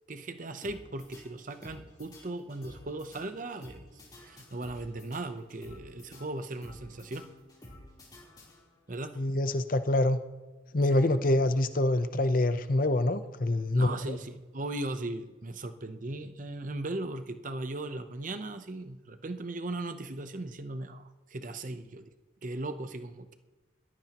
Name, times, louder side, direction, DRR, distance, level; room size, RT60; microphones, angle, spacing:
voice 1, 0.1-3.9 4.2-7.3 8.9-9.2 10.9-11.1 13.7-22.1 22.4-23.3, right 2 dB, 40° right, 9 dB, 0.8 m, -38 dB
sound 1, 0.6-8.9, left 1 dB, 20° left, 3.7 m, -52 dB
voice 2, 9.2-10.2 10.7-14.2, left 1 dB, 45° left, 10 dB, 0.7 m, -26 dB
21.0 x 15.0 x 3.0 m, 1.3 s
head